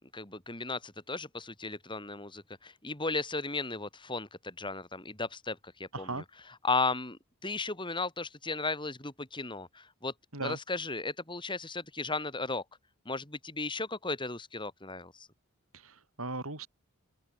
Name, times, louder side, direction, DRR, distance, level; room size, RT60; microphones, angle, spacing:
voice 1, 0.1-6.2 6.6-10.1 10.4-12.6 13.1-15.3, left 3 dB, 20° left, 7.8 m, -35 dB
voice 2, 5.9-6.2 10.3-10.6 15.7-16.7, right 2 dB, 75° right, 7.1 m, -37 dB
open air
head